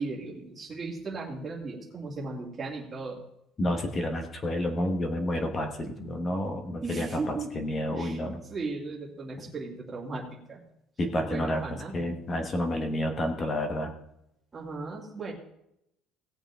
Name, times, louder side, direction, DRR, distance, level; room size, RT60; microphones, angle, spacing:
voice 1, 0.0-3.2 6.8-7.5 8.0-10.6 11.2-12.0 14.5-15.3, right 3 dB, 15° right, -3 dB, 2.6 m, -36 dB
voice 2, 3.6-8.4 11.0-11.6 11.9-13.9, left 1 dB, 20° left, 5 dB, 1.2 m, -30 dB
17.5 x 7.8 x 3.7 m, 0.79 s
cardioid pair, 175°, 0 cm